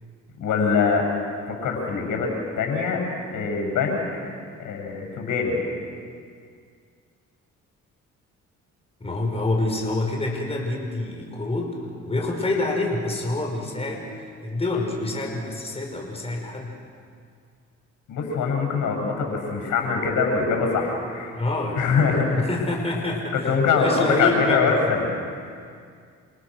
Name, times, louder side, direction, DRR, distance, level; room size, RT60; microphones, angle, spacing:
voice 1, 0.4-1.1 1.5-3.0 3.3-4.3 4.6-5.6 18.1-21.4 21.8-22.5 23.3-25.4, left 5 dB, 80° left, 2 dB, 7.8 m, -23 dB
voice 2, 9.0-11.8 12.1-16.7 21.3-22.0 22.4-24.7, left 2 dB, 20° left, 0 dB, 5.6 m, -27 dB
29.5 x 27.0 x 6.5 m, 2.2 s
cardioid pair, 90°, 30 cm